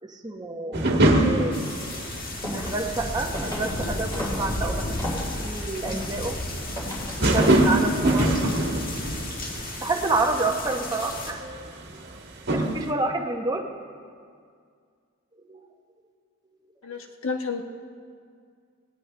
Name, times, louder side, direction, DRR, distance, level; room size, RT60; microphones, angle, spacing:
voice 1, 0.0-1.8 2.5-5.1 5.4-6.4 7.3-8.5 9.8-11.4 11.9-12.0 12.5-13.7 15.5-15.6, right 3 dB, 20° right, 1 dB, 0.9 m, -29 dB
sound 1, 0.7-2.6 2.9-3.3 4.1-4.3 4.5-4.6 4.9-5.0 5.4-5.5 5.7-5.8 7.2-9.7 10.0-10.2 10.5-12.1 12.5-12.9, right 1 dB, 55° right, 1.5 m, -23 dB
sound 2, 1.5-11.3, left 1 dB, 45° left, 1.7 m, -34 dB
sound 3, 2.3-7.4, equal, 15° left, 3.2 m, -35 dB
voice 2, 16.8-17.6, left 4 dB, 70° left, 4 dB, 1.2 m, -30 dB
18.5 x 18.0 x 3.3 m, 2.1 s
head